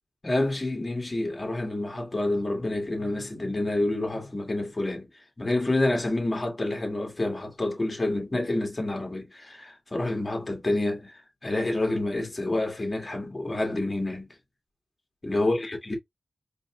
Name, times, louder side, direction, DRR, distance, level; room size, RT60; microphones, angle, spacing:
voice 1, 0.2-5.1 5.4-11.1 11.4-14.3 15.2-16.0, left 2 dB, 30° left, 2.0 m, -28 dB
4.1 x 3.6 x 2.3 m
wide cardioid pair, 75°, 0 cm